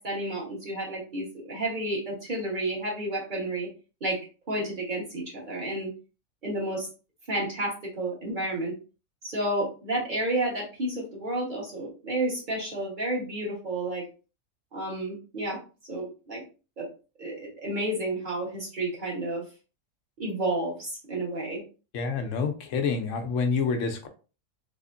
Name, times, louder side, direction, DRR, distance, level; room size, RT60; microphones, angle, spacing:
voice 1, 0.0-3.7 4.0-4.2 4.5-5.9 6.4-6.9 7.3-8.7 9.2-14.0 14.7-16.4 16.8-16.9 17.2-19.4 20.2-21.6, right 1 dB, 35° right, -3 dB, 1.4 m, -31 dB
voice 2, 21.9-24.1, left 5 dB, 70° left, 6 dB, 1.0 m, -27 dB
3.5 x 3.1 x 2.5 m, 0.34 s
omnidirectional pair, 1.4 m